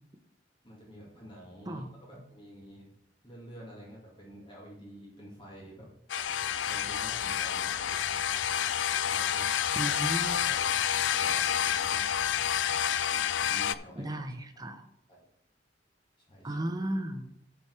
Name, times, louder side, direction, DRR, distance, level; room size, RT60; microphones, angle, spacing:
voice 1, 0.6-2.9 3.2-5.9 6.6-8.0 8.9-12.2 13.1-14.1 15.1-15.3 16.3-16.5, equal, 30° left, -3 dB, 2.2 m, -49 dB
sound 1, 6.1-13.7, left 9 dB, 85° left, 0.4 m, -29 dB
sound 2, 6.1-13.5, right 4 dB, 55° right, 0.6 m, -51 dB
voice 2, 9.8-10.4 13.9-14.9 16.4-17.3, right 1 dB, 20° right, 7 dB, 0.8 m, -34 dB
10.5 x 5.2 x 4.6 m, 0.77 s
head